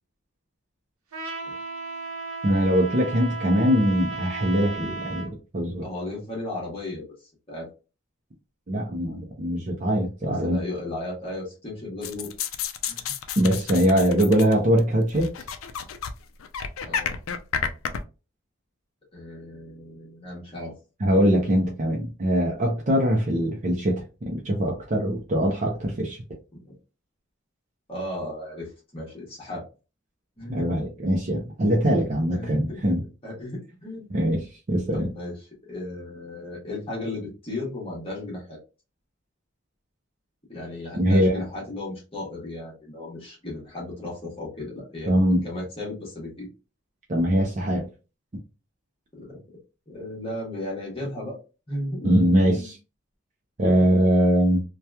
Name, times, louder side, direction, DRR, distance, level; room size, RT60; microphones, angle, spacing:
Trumpet, 1.1-5.3, right 3 dB, 90° right, 0.7 m, -35 dB
voice 1, 2.4-5.8 8.7-10.6 13.4-15.3 21.0-26.2 30.5-33.0 34.1-35.1 40.9-41.4 45.1-45.4 47.1-47.8 52.0-52.8 53.6-54.6, equal, 35° right, -1 dB, 0.5 m, -22 dB
voice 2, 5.8-7.7 10.3-12.3 12.9-13.1 16.8-17.1 19.1-20.8 26.6-26.7 27.9-29.6 30.4-30.7 32.3-33.0 33.2-34.1 34.9-38.6 40.5-46.5 49.1-49.4 49.9-51.4 51.7-52.1 52.5-52.7, left 1 dB, 25° left, -4 dB, 1.0 m, -35 dB
sound 1, 12.0-14.8 15.1-16.1 16.4-18.0, left 7 dB, 75° left, 0.4 m, -30 dB
2.8 x 2.2 x 2.2 m, 0.31 s
head